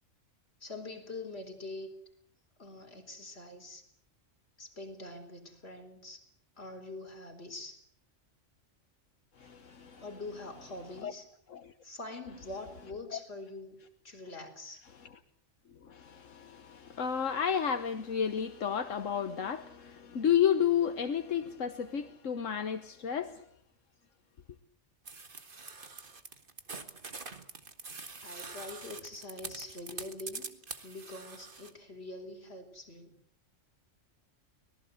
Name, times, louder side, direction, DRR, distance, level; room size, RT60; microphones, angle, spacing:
voice 1, 0.6-1.9 2.6-3.8 4.6-6.2 6.6-7.8 10.0-11.3 11.8-13.8 14.0-14.8 28.2-30.5 30.8-33.1, left 2 dB, 55° left, 4.6 m, -44 dB
voice 2, 9.4-10.0 11.0-11.1 11.5-11.7 13.1-13.2 15.0-15.1 15.8-23.4, left 8 dB, 80° left, 1.6 m, -31 dB
sound 1, 25.1-31.7, right 4 dB, 45° right, 1.9 m, -45 dB
24.5 x 19.5 x 7.9 m
omnidirectional pair, 1.3 m